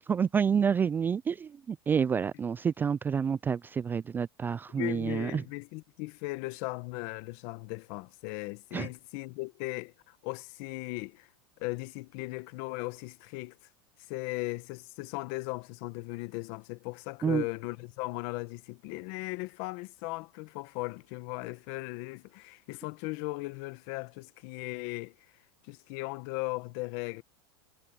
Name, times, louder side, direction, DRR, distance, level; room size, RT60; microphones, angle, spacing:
voice 1, 0.1-5.4 8.7-8.9 17.2-17.4, right 7 dB, 15° right, 0.3 m, -28 dB
voice 2, 4.8-11.3 11.6-13.6 14.1-25.1 25.6-27.2, left 23 dB, 55° left, 1.4 m, -37 dB
supercardioid pair, 130°, 13 cm